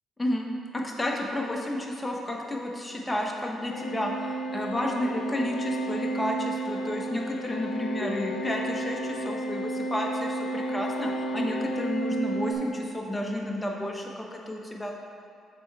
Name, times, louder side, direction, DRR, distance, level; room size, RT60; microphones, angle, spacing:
voice 1, 0.7-14.9, left 1 dB, 15° left, 0 dB, 1.0 m, -31 dB
sound 1, 3.7-12.5, right 1 dB, 80° left, 0.6 m, -32 dB
6.8 x 4.5 x 4.6 m, 2.4 s
cardioid pair, 90°, 0 cm